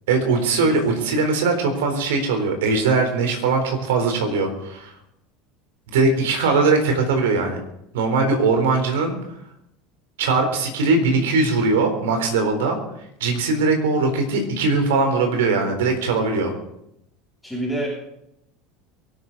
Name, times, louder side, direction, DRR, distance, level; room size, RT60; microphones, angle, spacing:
voice 1, 0.1-4.9 5.9-7.6 7.9-9.2 10.2-12.8 13.2-16.5, right 3 dB, 70° right, 4 dB, 3.9 m, -20 dB
voice 2, 17.4-17.9, right 1 dB, ahead, -5 dB, 7.5 m, -28 dB
23.0 x 12.5 x 4.1 m, 0.80 s
figure-of-eight pair, 75°, 0 cm